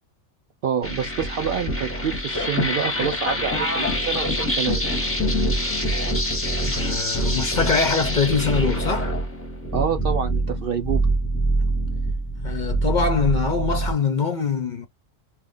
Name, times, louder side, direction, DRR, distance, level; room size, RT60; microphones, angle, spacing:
voice 1, 0.6-4.9 9.7-11.1, right 7 dB, 60° right, 0.6 m, -27 dB
sound 1, 0.8-13.9, right 1 dB, 10° left, 0.8 m, -25 dB
voice 2, 6.6-9.1 12.4-14.9, left 5 dB, 50° left, 0.6 m, -23 dB
2.9 x 2.4 x 3.6 m
omnidirectional pair, 1.3 m